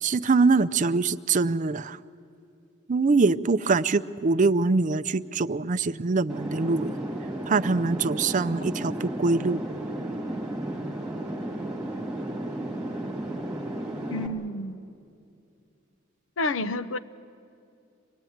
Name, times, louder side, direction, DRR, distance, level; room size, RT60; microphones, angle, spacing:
voice 1, 0.0-2.0 2.9-6.9 7.5-9.6, right 4 dB, 40° right, 0.5 m, -23 dB
sound 1, 6.3-14.3, right 1 dB, 5° right, 2.3 m, -33 dB
voice 2, 14.1-14.9 16.4-17.0, left 2 dB, 80° left, 0.8 m, -29 dB
25.0 x 19.0 x 9.3 m
head